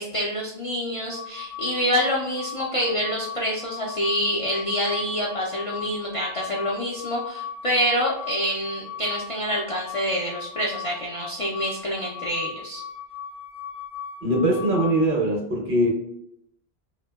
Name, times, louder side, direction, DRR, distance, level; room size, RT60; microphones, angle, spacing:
voice 1, 0.0-12.8, equal, 55° left, -4 dB, 0.3 m, -27 dB
sound 1, 1.1-15.1, left 8 dB, 75° left, 0.8 m, -38 dB
voice 2, 14.2-15.9, right 1 dB, 60° right, 1 dB, 0.8 m, -22 dB
2.6 x 2.1 x 2.2 m, 0.76 s
omnidirectional pair, 1.1 m